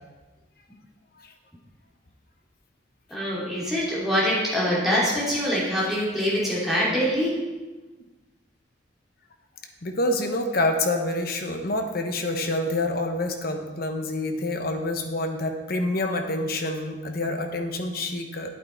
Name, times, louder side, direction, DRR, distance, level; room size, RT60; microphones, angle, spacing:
voice 1, 3.1-7.3, equal, ahead, -7 dB, 2.8 m, -24 dB
voice 2, 9.8-18.5, left 1 dB, 50° left, 5 dB, 1.0 m, -27 dB
8.8 x 8.3 x 4.5 m, 1.2 s
head